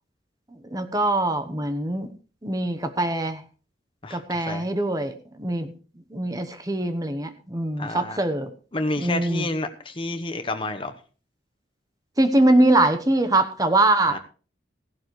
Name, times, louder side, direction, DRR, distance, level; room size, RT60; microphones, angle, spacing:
voice 1, 0.7-2.1 2.4-3.4 4.1-5.7 6.1-8.5 9.0-9.5 12.2-14.2, right 2 dB, 20° right, 9 dB, 1.0 m, -22 dB
voice 2, 4.0-4.6 7.8-8.2 8.7-10.9 14.1-14.2, left 2 dB, 25° left, 7 dB, 1.0 m, -30 dB
16.0 x 11.5 x 3.2 m, 0.37 s
head